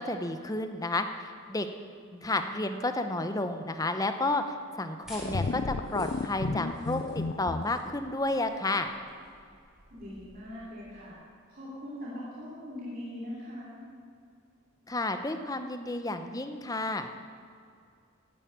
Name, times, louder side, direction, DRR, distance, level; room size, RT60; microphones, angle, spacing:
voice 1, 0.0-1.7 2.2-4.4 4.8-8.9 14.9-17.1, left 2 dB, 15° left, 8 dB, 0.8 m, -31 dB
voice 2, 2.0-2.6 9.9-11.2 11.5-13.8, left 1 dB, 40° right, -7 dB, 2.9 m, -42 dB
sound 1, 5.0-11.1, equal, ahead, 2.9 m, -48 dB
sound 2, 5.2-7.6, left 3 dB, 45° left, 0.4 m, -33 dB
11.5 x 9.8 x 9.4 m, 2.3 s
head